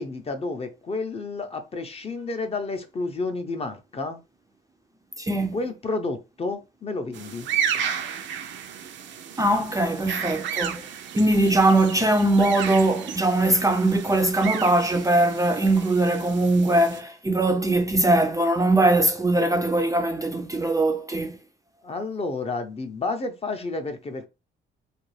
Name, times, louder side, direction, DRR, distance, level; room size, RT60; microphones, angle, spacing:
voice 1, 0.0-4.2 5.5-7.5 21.8-24.3, left 3 dB, 30° left, 0.6 m, -30 dB
voice 2, 5.2-5.5 9.4-10.8 11.1-21.4, right 2 dB, 15° right, 0.4 m, -21 dB
sound 1, 7.1-17.0, right 8 dB, 70° right, 0.5 m, -33 dB
2.4 x 2.2 x 3.1 m
cardioid pair, 90°, 20 cm